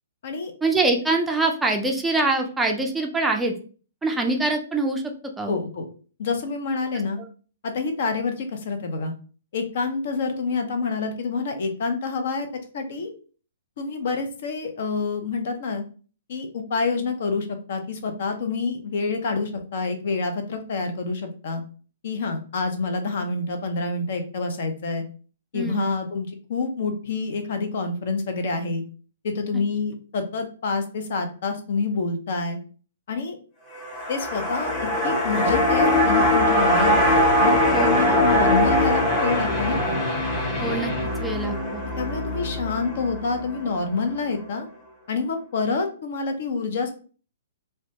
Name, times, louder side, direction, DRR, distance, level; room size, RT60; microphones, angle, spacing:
voice 1, 0.6-3.5 4.0-5.0 5.4-5.6 25.5-25.9 37.7-38.2 40.6-40.9 41.2-41.8, right 2 dB, 10° right, 2 dB, 0.4 m, -24 dB
voice 2, 5.5-5.9 6.2-7.2 7.6-9.1 9.5-12.5 12.7-13.1 13.8-15.8 16.3-21.6 22.0-25.0 25.5-28.8 29.2-32.6 33.1-33.4 34.1-37.0 37.4-40.0 42.0-44.7 45.1-46.9, left 4 dB, 55° left, 6 dB, 0.5 m, -27 dB
sound 1, 33.7-44.1 44.4-44.5, left 1 dB, 25° left, 0.8 m, -22 dB
2.1 x 2.1 x 2.7 m, 0.39 s
figure-of-eight pair, 120°, 0 cm